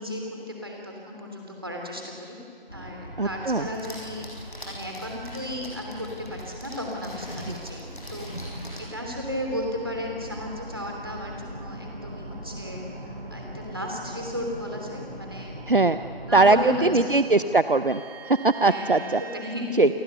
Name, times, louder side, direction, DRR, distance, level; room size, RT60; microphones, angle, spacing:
voice 1, 0.0-2.4 2.7-4.3 4.7-8.3 8.8-12.8 13.3-15.6 16.2-17.0 17.3-17.4 18.6-19.8, left 1 dB, 25° right, 0 dB, 3.0 m, -34 dB
sound 1, 2.7-19.4, right 1 dB, 90° right, 6.3 m, -41 dB
voice 2, 3.2-3.7 15.7-16.0 16.3-19.2 19.8-19.9, right 3 dB, 60° right, 11 dB, 0.7 m, -20 dB
sound 2, 3.6-8.9, equal, 55° left, 7.0 m, -42 dB
28.5 x 19.5 x 7.0 m, 2.5 s
figure-of-eight pair, 175°, 30 cm